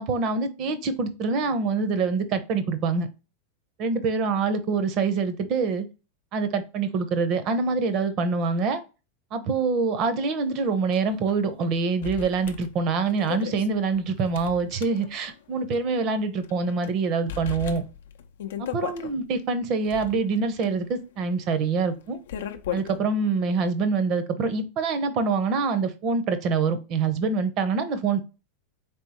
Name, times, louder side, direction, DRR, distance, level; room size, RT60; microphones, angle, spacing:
voice 1, 0.0-3.1 3.8-5.8 6.3-8.8 9.3-17.8 18.6-22.2 22.7-28.2, right 4 dB, 45° right, 0.7 m, -25 dB
sound 1, 10.9-11.0 11.3-11.4 12.0-15.4 15.7-15.8 16.4-16.9 17.3-19.1 19.7-23.0, left 10 dB, 80° left, 0.4 m, -36 dB
3.6 x 3.5 x 2.9 m
hypercardioid pair, 115°, 0 cm